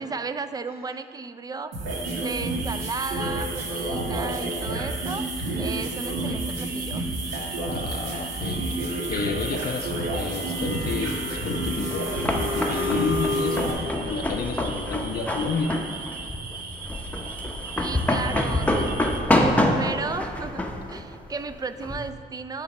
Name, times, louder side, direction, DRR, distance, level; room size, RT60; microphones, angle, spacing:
voice 1, 0.0-1.7 2.1-5.3 5.6-7.1 17.8-18.9 19.3-22.6, right 4 dB, 20° right, 11 dB, 0.4 m, -34 dB
sound 1, 1.7-13.7, right 1 dB, 80° right, 1.6 m, -29 dB
sound 2, 1.9-19.2, right 4 dB, 45° right, 0.7 m, -39 dB
voice 2, 7.7-15.8, left 4 dB, 50° left, 5 dB, 0.6 m, -31 dB
sound 3, 11.7-22.1, left 1 dB, 5° left, 0.7 m, -27 dB
9.8 x 4.0 x 5.3 m, 2.2 s
cardioid pair, 90°, 20 cm